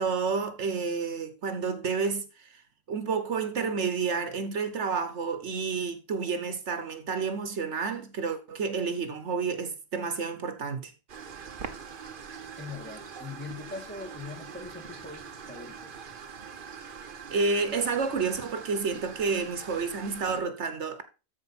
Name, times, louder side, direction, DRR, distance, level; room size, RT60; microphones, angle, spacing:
voice 1, 0.0-2.6 2.9-10.9 17.3-21.0, right 5 dB, 70° right, 1.4 m, -30 dB
sound 1, 11.1-20.4, right 6 dB, 45° right, 1.0 m, -43 dB
voice 2, 12.6-16.1, left 4 dB, 10° left, 1.7 m, -42 dB
13.5 x 4.9 x 4.2 m
omnidirectional pair, 1.3 m